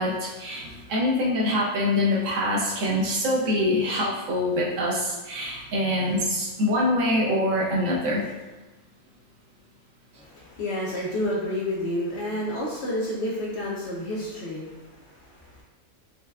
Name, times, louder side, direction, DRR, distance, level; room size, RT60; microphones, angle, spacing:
voice 1, 0.0-8.3, left 1 dB, 65° right, -5 dB, 1.0 m, -25 dB
voice 2, 10.2-15.6, left 1 dB, 60° left, -5 dB, 0.7 m, -30 dB
5.5 x 2.2 x 2.2 m, 1.1 s
omnidirectional pair, 1.5 m